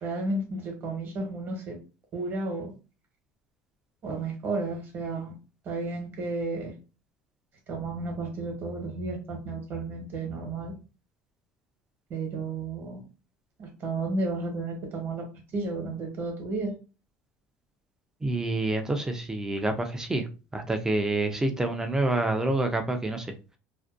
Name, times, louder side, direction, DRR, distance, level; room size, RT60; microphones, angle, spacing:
voice 1, 0.0-1.7 2.1-2.7 4.0-5.3 5.6-6.7 7.7-10.7 12.1-13.0 13.6-15.2 15.5-16.7, right 3 dB, 40° right, 1.0 m, -32 dB
voice 2, 18.2-20.3 20.5-23.3, right 2 dB, 10° right, 0.4 m, -27 dB
2.5 x 2.1 x 2.4 m
cardioid pair, 145°, 6 cm